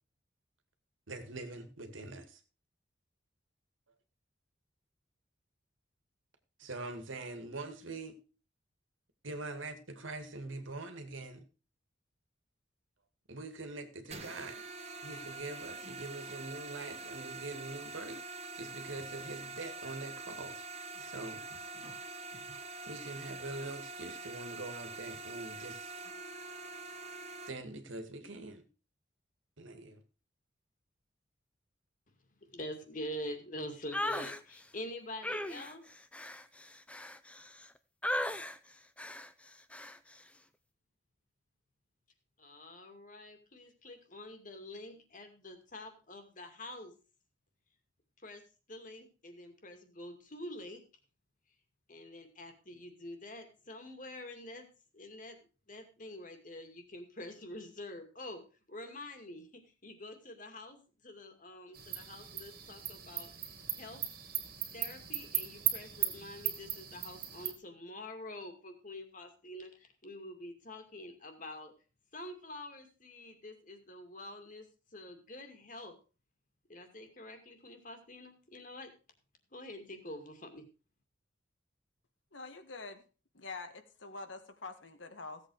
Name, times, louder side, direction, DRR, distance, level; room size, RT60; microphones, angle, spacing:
voice 1, 1.1-2.4 6.6-8.2 9.2-11.5 13.3-14.6 15.0-20.6 21.0-21.4 22.9-25.9 27.5-28.6 29.6-30.0, right 2 dB, 90° right, 7 dB, 2.2 m, -43 dB
sound 1, 14.1-27.5, right 3 dB, 35° right, 1.3 m, -45 dB
voice 2, 32.5-35.9 42.4-46.9 48.2-48.4 48.7-50.8 51.9-54.7 54.9-55.4 55.7-58.4 58.7-63.3 63.8-64.0 64.7-71.7 72.1-75.9 76.7-78.9 79.5-80.6, left 1 dB, 45° left, 6 dB, 2.4 m, -46 dB
sound 2, 33.9-34.4 35.2-37.7 38.0-38.6 39.0-39.3 39.7-40.0, left 1 dB, 5° left, 0.6 m, -37 dB
sound 3, 61.7-67.5, right 10 dB, 50° right, 2.4 m, -37 dB
voice 3, 82.3-83.0 83.3-85.4, left 3 dB, 75° left, 7 dB, 1.9 m, -45 dB
16.0 x 8.1 x 4.8 m, 0.35 s
head